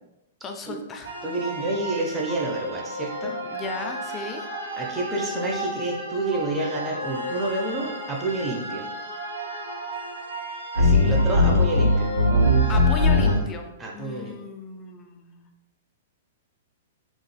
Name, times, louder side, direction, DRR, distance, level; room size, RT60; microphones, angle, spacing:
voice 1, 0.4-1.1 3.4-4.5 12.7-15.5, left 3 dB, 20° left, 3 dB, 0.4 m, -35 dB
sound 1, 1.0-13.3, left 1 dB, 85° right, 1.5 m, -25 dB
voice 2, 1.2-3.3 4.8-8.9 10.7-12.1 13.8-14.4, right 2 dB, 15° right, -2 dB, 0.7 m, -29 dB
3.8 x 3.0 x 2.2 m, 0.93 s
figure-of-eight pair, 110°, 0 cm